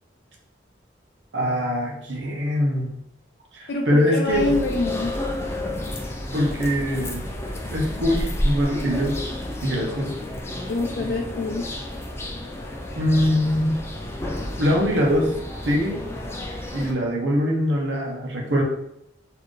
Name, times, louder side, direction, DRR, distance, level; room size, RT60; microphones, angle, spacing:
voice 1, 1.3-2.9 3.5-4.5 6.3-7.3 7.7-9.2 9.6-10.1 13.0-13.8 14.6-15.3 15.6-16.0 16.7-18.6, equal, 75° right, -1 dB, 0.9 m, -22 dB
voice 2, 3.7-5.1 10.7-11.7, left 3 dB, 70° left, -1 dB, 0.5 m, -25 dB
sound 1, 4.3-16.9, left 1 dB, 15° left, 0.4 m, -31 dB
4.1 x 2.7 x 3.2 m, 0.77 s
head